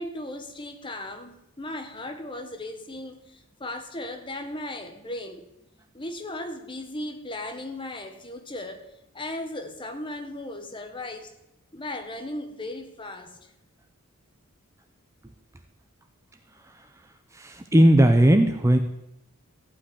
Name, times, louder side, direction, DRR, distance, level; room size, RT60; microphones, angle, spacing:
voice 1, 0.0-5.4 5.9-11.3 11.7-13.4, left 1 dB, 20° left, 1.3 m, -36 dB
voice 2, 17.4-18.8, right 1 dB, 15° right, 0.6 m, -17 dB
14.5 x 5.7 x 9.8 m
head